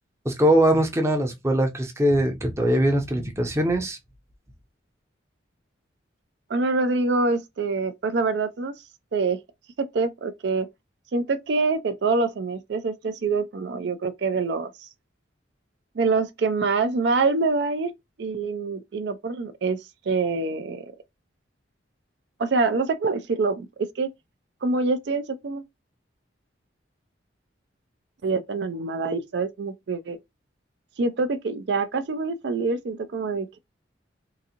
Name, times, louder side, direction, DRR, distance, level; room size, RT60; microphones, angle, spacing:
voice 1, 0.2-4.0, right 1 dB, 15° right, 0.6 m, -21 dB
voice 2, 6.5-8.7 9.1-9.4 9.8-10.7 11.1-14.9 15.9-17.9 18.2-20.9 22.4-24.1 24.6-25.6 28.2-30.2 31.0-33.6, right 3 dB, 60° right, 0.4 m, -25 dB
3.8 x 2.6 x 2.8 m
head